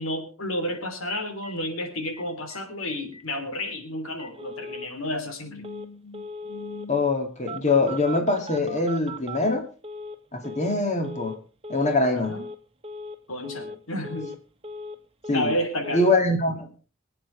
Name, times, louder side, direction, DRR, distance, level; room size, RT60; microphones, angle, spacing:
voice 1, 0.0-5.7 12.1-12.4 13.3-14.4 15.3-16.0, left 1 dB, 90° left, 3.4 m, -31 dB
Telephone, 0.7-0.8 1.1-1.2 1.4-1.5 1.8-2.2 2.5-2.6 2.9-3.2 3.6-3.7 4.2-4.9 5.6-5.9 6.1-6.9 7.5-10.2 10.4-10.8 11.0-11.4 11.6-12.0 12.2-12.6 12.8-13.2 13.4-13.8 14.0-15.0 15.2-15.6 15.8-16.1, left 1 dB, 30° right, 1.2 m, -38 dB
voice 2, 5.5-9.7 10.3-11.4 11.7-12.4 15.3-15.5 15.9-16.7, left 2 dB, 35° left, 2.6 m, -24 dB
23.5 x 9.2 x 3.4 m
head